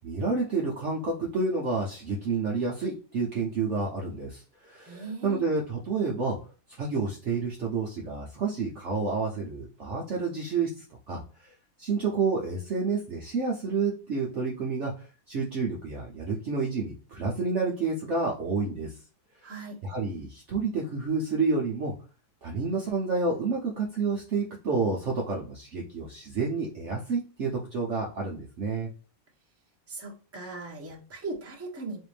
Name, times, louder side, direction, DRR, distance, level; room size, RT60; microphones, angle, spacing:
voice 1, 0.0-6.4 6.8-11.5 11.8-19.0 19.8-21.9 22.4-28.9, right 4 dB, 55° right, -2 dB, 0.9 m, -29 dB
voice 2, 4.9-5.4 19.4-19.8 29.9-32.0, right 3 dB, 10° right, -3 dB, 0.9 m, -38 dB
4.1 x 2.5 x 3.3 m, 0.37 s
omnidirectional pair, 1.7 m